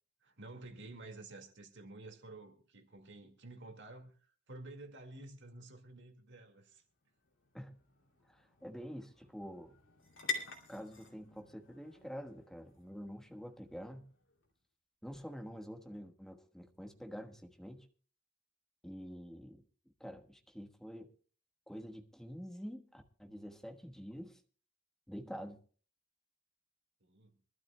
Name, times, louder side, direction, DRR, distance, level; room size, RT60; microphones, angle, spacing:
voice 1, 0.2-6.8 27.0-27.3, right 2 dB, 55° right, 2.1 m, -51 dB
sound 1, 6.7-14.5, left 5 dB, 60° left, 2.8 m, -47 dB
voice 2, 8.3-9.8 10.7-14.1 15.0-17.9 18.8-19.6 20.0-21.1 21.7-24.4 25.1-25.6, equal, ahead, 1.3 m, -47 dB
25.0 x 12.5 x 2.3 m
head